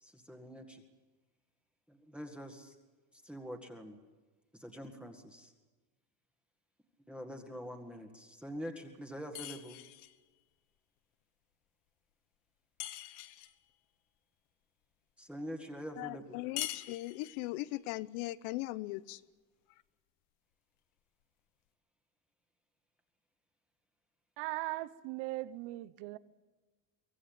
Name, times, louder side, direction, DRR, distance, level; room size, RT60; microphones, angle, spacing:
voice 1, 0.0-0.8 1.9-2.8 3.2-4.0 4.6-5.5 7.1-9.8 15.2-16.4, equal, 5° right, 1.9 m, -45 dB
sound 1, 9.3-10.2 12.8-13.6 16.6-17.5, left 15 dB, 65° left, 1.4 m, -42 dB
voice 2, 16.0-19.2, left 18 dB, 90° left, 1.0 m, -39 dB
voice 3, 24.4-26.2, right 18 dB, 70° right, 1.1 m, -39 dB
24.0 x 18.0 x 8.9 m
cardioid pair, 155°, 43 cm